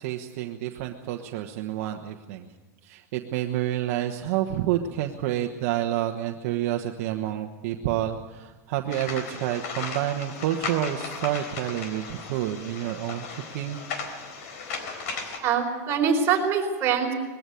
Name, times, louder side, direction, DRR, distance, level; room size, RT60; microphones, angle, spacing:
voice 1, 0.0-2.5 2.8-13.8, right 12 dB, 60° right, 3 dB, 1.2 m, -29 dB
sound 1, 8.9-15.4, left 4 dB, 65° left, 3.9 m, -36 dB
voice 2, 15.4-17.1, right 6 dB, 30° right, 0 dB, 4.5 m, -23 dB
21.0 x 15.0 x 9.3 m, 1.3 s
supercardioid pair, 155°, 9 cm